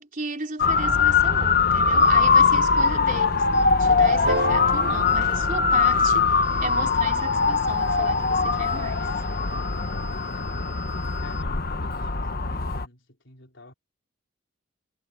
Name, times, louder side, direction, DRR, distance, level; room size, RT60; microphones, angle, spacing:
voice 1, 0.0-9.1, right 3 dB, 40° right, 3.8 m, -34 dB
Motor vehicle (road) / Siren, 0.6-12.9, left 5 dB, 45° left, 1.0 m, -22 dB
sound 1, 2.8-2.9 3.5-3.7 4.3-4.5 5.1-5.2 5.8-6.0 6.4-11.4, right 2 dB, 5° right, 6.2 m, -50 dB
sound 2, 4.3-6.8 9.0-9.1, right 2 dB, 75° right, 3.5 m, -33 dB
voice 2, 10.1-10.6 11.2-13.7, left 2 dB, 70° left, 4.3 m, -47 dB
head